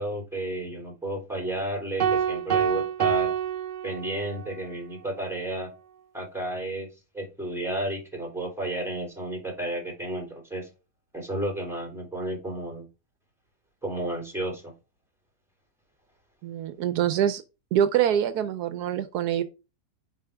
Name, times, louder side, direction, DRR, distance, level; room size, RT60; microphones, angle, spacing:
voice 1, 0.0-3.3 3.8-5.7 6.1-6.9 7.1-10.7 11.1-12.9 13.8-14.7, right 1 dB, ahead, 3.5 m, -32 dB
sound 1, 2.0-4.5, right 8 dB, 55° right, 0.6 m, -26 dB
voice 2, 16.4-17.4 17.7-19.4, right 10 dB, 80° right, 1.2 m, -25 dB
6.9 x 5.1 x 3.4 m
omnidirectional pair, 1.7 m